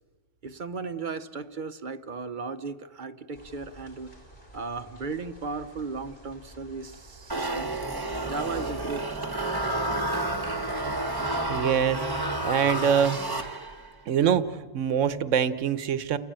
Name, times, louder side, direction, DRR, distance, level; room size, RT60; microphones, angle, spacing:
voice 1, 0.4-4.1 4.5-7.8 8.2-9.6, right 4 dB, 45° right, 0.9 m, -36 dB
sound 1, 3.3-11.6, right 2 dB, 45° left, 5.5 m, -51 dB
sound 2, 7.3-13.9, right 1 dB, 20° right, 1.4 m, -30 dB
voice 2, 11.5-13.2 14.1-16.2, right 8 dB, 80° right, 1.2 m, -25 dB
30.0 x 15.0 x 8.8 m
omnidirectional pair, 1.3 m